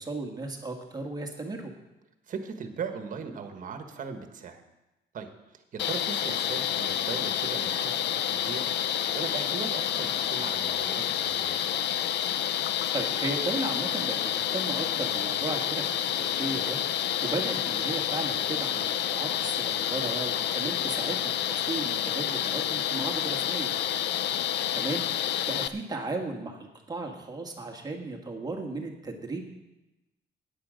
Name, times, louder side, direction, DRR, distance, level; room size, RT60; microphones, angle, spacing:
voice 1, 0.0-1.7 12.9-16.8 17.2-23.7 24.7-29.4, right 2 dB, 20° right, 2 dB, 1.5 m, -35 dB
voice 2, 2.3-4.6 5.1-8.6 9.1-11.6 20.8-20.9, right 6 dB, 45° right, 7 dB, 1.4 m, -38 dB
sound 1, 5.8-25.7, left 10 dB, 70° left, 0.6 m, -29 dB
14.0 x 10.0 x 5.1 m, 0.98 s
cardioid pair, 160°, 18 cm